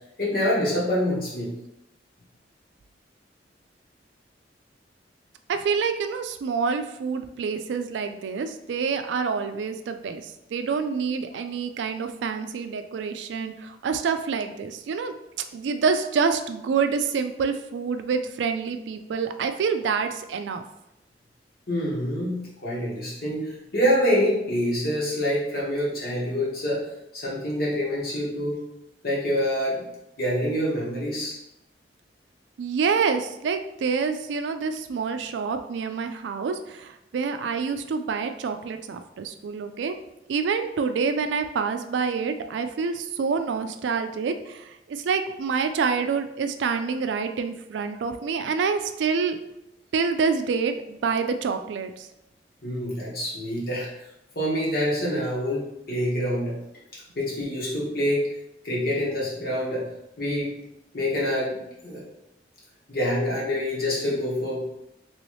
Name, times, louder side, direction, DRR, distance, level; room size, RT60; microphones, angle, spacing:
voice 1, 0.2-1.5 21.7-26.8 27.1-28.6 29.0-29.9 30.2-31.4 52.6-54.0 54.3-56.6 56.9-58.3 58.6-59.9 60.2-60.5 60.9-62.0 62.9-64.7, equal, 55° left, -5 dB, 1.2 m, -26 dB
voice 2, 5.5-15.1 15.5-20.6 32.6-40.0 40.3-49.4 49.9-52.1, right 5 dB, 90° right, 8 dB, 0.3 m, -27 dB
3.0 x 3.0 x 3.1 m, 0.86 s
head